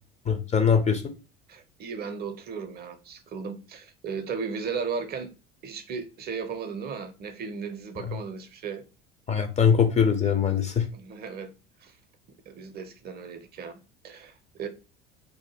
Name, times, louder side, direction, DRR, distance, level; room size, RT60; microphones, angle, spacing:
voice 1, 0.3-1.1 8.1-8.2 9.3-10.9, left 7 dB, 25° left, 0.4 m, -22 dB
voice 2, 1.5-5.3 5.6-8.8 10.9-11.5 11.8-11.9 12.5-14.3 14.6-14.7, right 5 dB, 30° right, 0.5 m, -36 dB
2.5 x 2.0 x 3.2 m
figure-of-eight pair, 65°, 31 cm